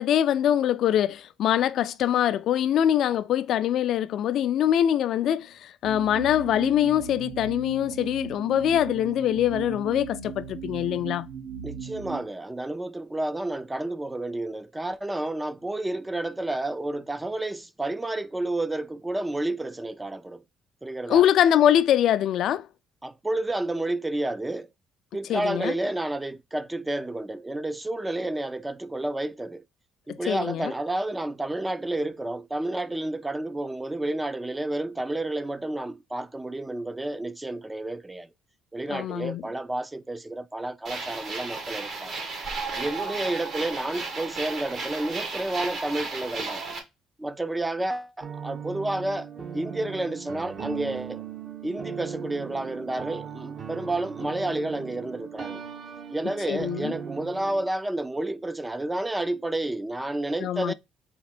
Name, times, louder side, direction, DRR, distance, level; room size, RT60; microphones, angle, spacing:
voice 1, 0.0-11.3 21.1-22.7 25.3-25.7 30.1-30.7 38.9-39.4 56.5-56.9 60.4-60.7, left 10 dB, 65° left, 0.3 m, -23 dB
sound 1, 5.8-12.2, right 7 dB, 75° right, 1.3 m, -37 dB
voice 2, 11.6-20.4 20.8-21.2 23.0-24.7 25.1-29.6 30.1-38.3 38.7-42.2 42.8-46.6 47.2-51.2 51.6-55.6 56.1-60.7, right 2 dB, 10° right, 0.4 m, -30 dB
sound 2, 40.8-46.8, right 4 dB, 60° right, 1.7 m, -34 dB
sound 3, 48.2-57.7, right 7 dB, 40° right, 0.8 m, -38 dB
4.2 x 2.9 x 4.3 m
cardioid pair, 105°, 0 cm